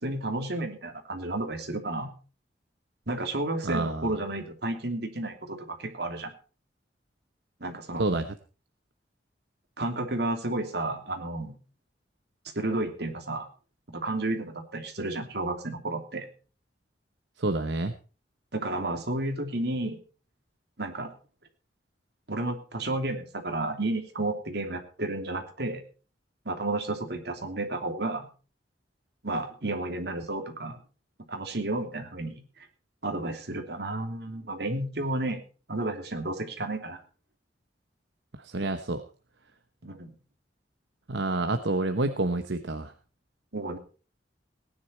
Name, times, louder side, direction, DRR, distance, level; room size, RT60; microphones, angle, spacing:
voice 1, 0.0-2.1 3.1-6.3 7.6-8.1 9.8-11.6 12.5-13.5 13.9-16.3 18.5-20.0 20.8-21.1 22.3-25.8 26.4-28.3 29.2-30.8 31.3-32.4 33.0-35.4 35.7-37.0 39.8-40.1 43.5-43.8, right 2 dB, 65° right, 5 dB, 2.9 m, -32 dB
voice 2, 3.6-4.1 8.0-8.3 17.4-17.9 38.4-39.0 41.1-42.9, right 2 dB, 80° right, 8 dB, 1.0 m, -28 dB
18.5 x 10.5 x 4.4 m, 0.37 s
head